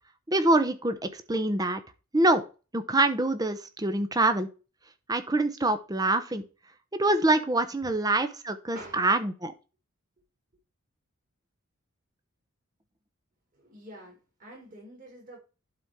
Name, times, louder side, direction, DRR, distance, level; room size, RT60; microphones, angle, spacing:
voice 1, 0.3-1.8 2.1-2.4 2.7-4.5 5.1-6.4 6.9-9.5, right 2 dB, 15° right, 0.9 m, -25 dB
voice 2, 8.7-9.1 13.5-15.4, right 1 dB, 40° right, 4.4 m, -47 dB
11.5 x 4.3 x 4.8 m
head